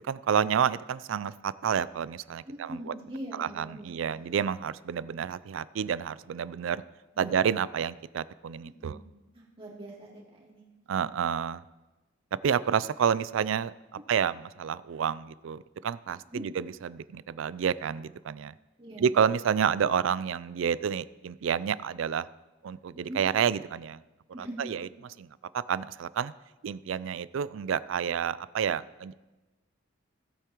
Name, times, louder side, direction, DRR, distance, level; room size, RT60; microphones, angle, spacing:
voice 1, 0.0-2.9 3.4-6.8 7.2-9.0 10.9-11.6 12.3-13.7 14.1-18.5 19.0-22.3 22.6-24.0 24.4-24.9 25.2-25.3 25.5-26.3 26.6-29.1, right 7 dB, 75° right, 18 dB, 0.4 m, -29 dB
voice 2, 2.5-4.4 7.1-7.4 8.6-9.0 9.3-10.6 16.3-16.4 18.8-19.1 23.1-23.2 24.3-24.7, right 1 dB, 25° right, -4 dB, 2.6 m, -42 dB
17.5 x 8.2 x 3.0 m, 1.1 s
head